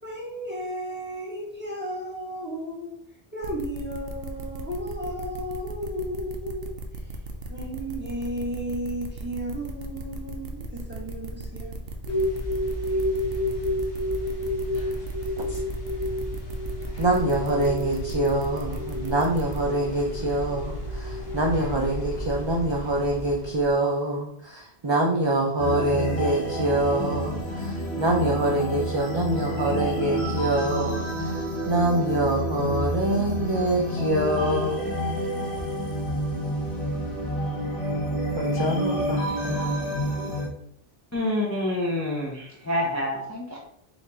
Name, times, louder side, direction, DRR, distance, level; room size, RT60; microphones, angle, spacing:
voice 1, 0.0-3.0 3.3-7.1 7.5-11.8, equal, 10° right, -4 dB, 1.3 m, -34 dB
sound 1, 3.4-19.6, right 3 dB, 65° right, 0.9 m, -37 dB
sound 2, 12.1-23.7, left 1 dB, 70° left, 1.1 m, -31 dB
voice 2, 17.0-31.4 31.7-34.8 38.4-39.9, right 1 dB, 35° right, -1 dB, 0.4 m, -25 dB
sound 3, 25.6-40.5, equal, 90° left, 1.8 m, -29 dB
voice 3, 41.1-43.6, left 1 dB, 20° left, -3 dB, 0.6 m, -27 dB
4.2 x 2.6 x 4.1 m, 0.68 s
omnidirectional pair, 1.1 m